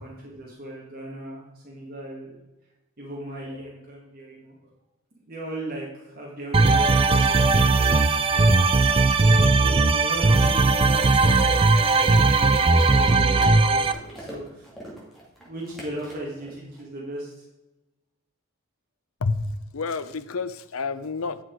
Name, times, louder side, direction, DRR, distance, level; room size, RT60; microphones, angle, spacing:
voice 1, 0.0-2.3 3.0-4.6 5.3-8.7 9.2-14.7 15.4-17.3, right 1 dB, 45° right, -5 dB, 2.1 m, -37 dB
sound 1, 6.5-13.9, right 3 dB, 25° right, 0.4 m, -18 dB
sound 2, 8.9-16.8, right 1 dB, ahead, 2.3 m, -44 dB
voice 2, 19.2-21.4, left 4 dB, 90° left, 13 dB, 0.6 m, -29 dB
10.0 x 6.1 x 4.6 m, 1.1 s
head